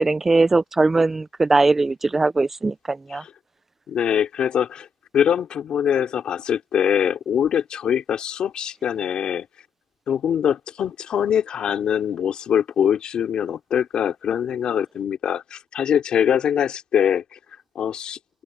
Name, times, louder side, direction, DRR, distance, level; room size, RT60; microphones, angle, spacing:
voice 1, 0.0-3.2, right 3 dB, 10° right, 0.4 m, -20 dB
voice 2, 3.9-4.9 5.1-9.5 10.1-17.4 17.7-18.2, left 8 dB, 35° left, 3.3 m, -23 dB
open air
cardioid pair, 160°, 3 cm